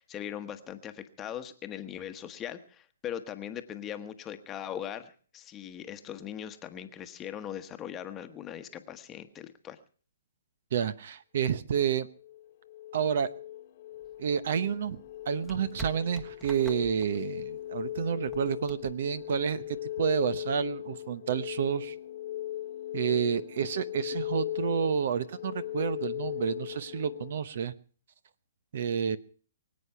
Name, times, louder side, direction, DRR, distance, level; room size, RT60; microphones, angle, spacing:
voice 1, 0.0-9.8, left 10 dB, 20° left, 8 dB, 1.1 m, -40 dB
voice 2, 10.7-12.1 12.9-13.3 14.2-15.0 15.2-21.9 22.9-27.7 28.7-29.2, right 7 dB, 55° right, 16 dB, 0.9 m, -30 dB
sound 1, 12.2-27.3, left 13 dB, 45° left, 0.9 m, -38 dB
sound 2, 14.0-19.9, left 2 dB, 5° right, 1.2 m, -51 dB
23.5 x 8.5 x 5.7 m, 0.43 s
hypercardioid pair, 150°, 0 cm